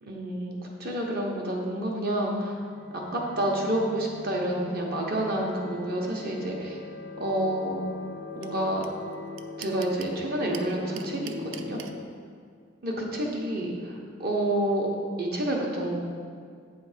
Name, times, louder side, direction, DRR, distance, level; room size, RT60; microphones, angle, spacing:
voice 1, 0.0-2.5 2.9-6.8 7.2-7.8 8.3-8.8 9.6-11.8 12.8-13.9 14.2-14.9 15.2-16.0, right 1 dB, 50° right, -1 dB, 1.0 m, -29 dB
sound 1, 2.5-12.0, left 3 dB, 65° left, 0.5 m, -42 dB
sound 2, 8.4-8.5 8.8-8.9 9.1-10.1 10.5-11.9, right 10 dB, 75° right, 0.4 m, -41 dB
8.1 x 3.4 x 4.9 m, 2.1 s
head